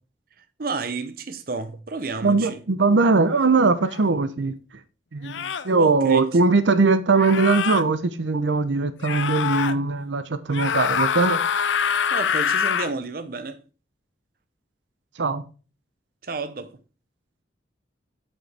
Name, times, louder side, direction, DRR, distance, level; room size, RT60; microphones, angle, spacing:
voice 1, 0.6-2.6 5.8-6.2 12.1-13.6 16.2-16.7, right 3 dB, 50° right, 0.7 m, -31 dB
voice 2, 2.2-4.5 5.1-11.4 15.2-15.4, right 3 dB, 85° right, 0.6 m, -20 dB
sound 1, 3.9-4.0 5.2-5.7 7.2-7.8 9.0-9.7 10.5-12.9, left 7 dB, 85° left, 0.5 m, -25 dB
7.6 x 6.4 x 3.4 m
head